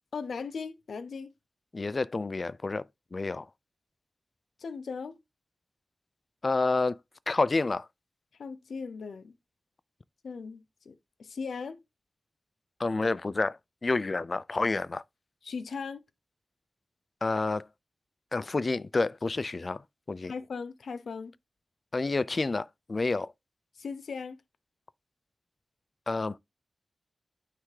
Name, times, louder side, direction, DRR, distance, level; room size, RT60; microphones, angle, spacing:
voice 1, 0.1-1.3 4.6-5.2 8.3-9.3 10.2-11.8 15.4-16.0 20.3-21.3 23.8-24.4, left 5 dB, 90° left, 0.5 m, -38 dB
voice 2, 1.7-2.9 3.1-3.5 6.4-7.0 7.3-7.9 12.8-15.0 17.2-17.7 18.3-19.8 20.1-20.3 21.9-23.3 26.1-26.4, left 3 dB, 40° left, 0.3 m, -29 dB
9.4 x 3.3 x 3.2 m
wide cardioid pair, 125°, 0 cm